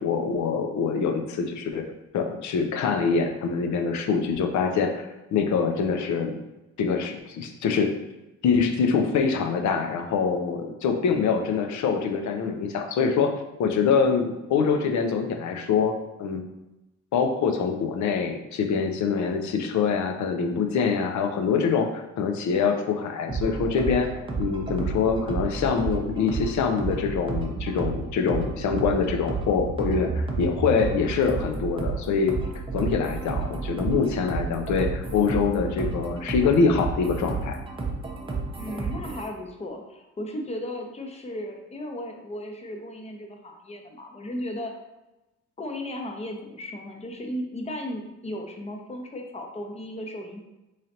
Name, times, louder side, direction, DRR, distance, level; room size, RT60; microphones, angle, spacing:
voice 1, 0.0-1.8 2.1-6.4 6.8-7.9 8.4-13.3 13.6-15.9 16.2-16.5 17.1-24.1 24.4-32.4 32.7-37.6, left 5 dB, 70° left, 5 dB, 0.6 m, -24 dB
sound 1, 23.3-39.3, right 4 dB, 15° right, 0.7 m, -31 dB
voice 2, 38.6-44.7 45.6-50.4, left 1 dB, 20° left, 3 dB, 0.6 m, -35 dB
3.7 x 3.2 x 2.8 m, 0.99 s
cardioid pair, 90°, 30 cm